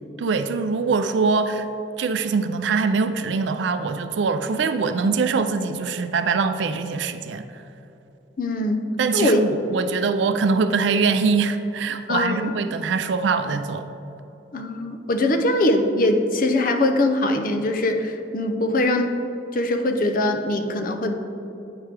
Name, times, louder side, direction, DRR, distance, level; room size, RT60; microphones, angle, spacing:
voice 1, 0.2-1.6 2.0-7.4 9.0-13.9, right 4 dB, 80° right, 9 dB, 0.4 m, -23 dB
voice 2, 8.4-9.4 12.1-12.5 14.5-19.2 19.5-21.2, left 1 dB, 50° left, 5 dB, 0.6 m, -22 dB
9.8 x 4.5 x 3.3 m, 3.0 s
head